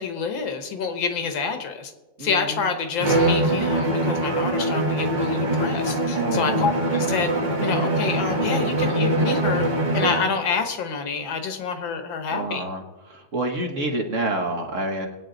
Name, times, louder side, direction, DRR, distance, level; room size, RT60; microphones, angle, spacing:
voice 1, 0.0-1.9 2.2-7.3 7.6-9.7 9.9-12.7, left 5 dB, 75° left, 7 dB, 1.9 m, -27 dB
voice 2, 2.2-2.7 6.1-6.7 12.3-15.1, right 2 dB, 45° right, 3 dB, 1.4 m, -28 dB
Bowed string instrument, 3.0-10.4, right 1 dB, 25° right, 1.3 m, -23 dB
21.5 x 8.9 x 3.9 m, 1.2 s
omnidirectional pair, 2.1 m